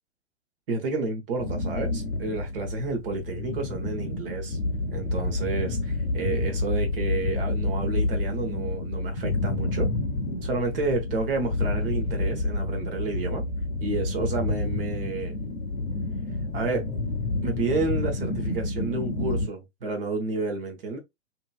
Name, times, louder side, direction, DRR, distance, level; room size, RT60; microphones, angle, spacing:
voice 1, 0.7-4.6 4.9-9.9 10.4-13.5 13.8-15.4 16.5-16.9 17.4-21.0, right 3 dB, 55° right, 1.0 m, -30 dB
sound 1, 1.4-19.5, left 2 dB, 60° left, 0.8 m, -29 dB
2.8 x 2.8 x 2.2 m
figure-of-eight pair, 110°, 34 cm